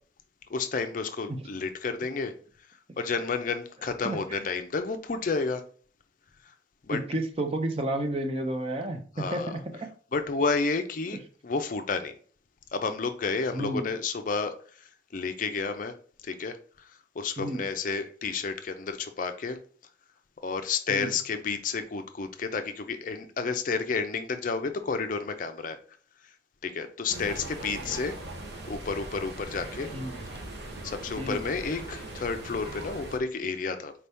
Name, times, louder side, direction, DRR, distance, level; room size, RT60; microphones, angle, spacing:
voice 1, 0.5-2.3 3.0-5.6 6.9-7.0 9.2-9.6 10.1-12.2 12.7-15.9 16.2-19.6 20.4-25.8 26.6-28.2 28.7-29.9 30.8-33.9, left 4 dB, 45° left, 0.4 m, -31 dB
voice 2, 6.9-9.9 13.5-13.9 17.4-17.7 20.9-21.1 29.9-30.2 31.2-31.4, right 1 dB, 30° right, 0.6 m, -31 dB
sound 1, 27.1-33.2, right 1 dB, 60° right, 0.9 m, -40 dB
4.5 x 2.7 x 3.4 m
head